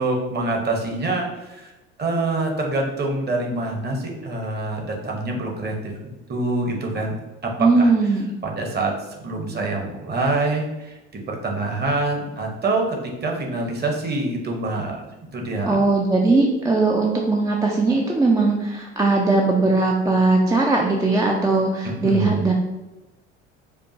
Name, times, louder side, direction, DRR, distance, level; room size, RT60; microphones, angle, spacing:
voice 1, 0.0-1.7 2.0-5.7 6.3-7.1 7.4-7.9 8.4-15.0 15.3-15.8 21.8-22.5, right 2 dB, 30° right, 1 dB, 1.0 m, -25 dB
voice 2, 7.6-8.3 15.7-22.5, right 3 dB, 10° right, -1 dB, 0.4 m, -19 dB
4.5 x 2.4 x 2.7 m, 1.0 s
figure-of-eight pair, 60°, 35 cm